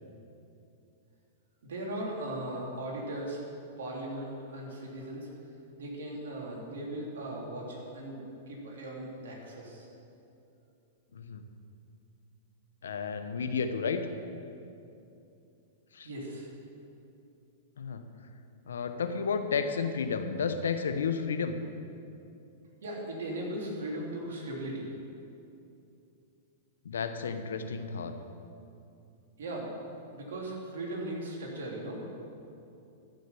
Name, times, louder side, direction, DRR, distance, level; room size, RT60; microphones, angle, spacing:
voice 1, 1.6-3.4 3.8-5.3 5.8-9.9 16.0-16.5 22.8-24.9 29.4-29.7 30.1-32.0, right 1 dB, 80° right, -2 dB, 3.1 m, -38 dB
voice 2, 12.8-14.0 15.9-16.1 17.8-18.0 18.7-21.6 26.8-28.1, left 5 dB, 85° left, 8 dB, 0.9 m, -32 dB
14.5 x 6.5 x 7.0 m, 2.7 s
hypercardioid pair, 120°, 0 cm